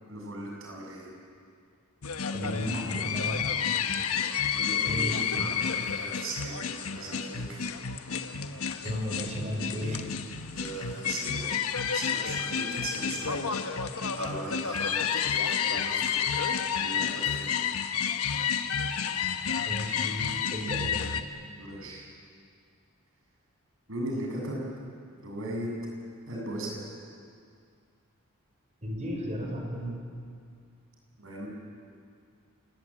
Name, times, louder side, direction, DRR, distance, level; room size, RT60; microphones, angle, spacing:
voice 1, 0.1-1.1 4.5-7.7 10.5-11.4 11.8-13.5 14.1-16.2 16.7-17.7 21.6-22.0 23.9-24.6 25.2-25.7 26.3-26.8 31.2-31.5, right 1 dB, 60° right, -1 dB, 7.7 m, -38 dB
sound 1, 2.0-21.2, left 7 dB, 80° left, 1.2 m, -30 dB
voice 2, 2.3-3.4 4.9-5.4 5.8-6.0 8.8-10.0 19.6-21.1 28.8-29.9, equal, 30° right, 1 dB, 5.3 m, -34 dB
28.0 x 20.5 x 9.0 m, 2.3 s
head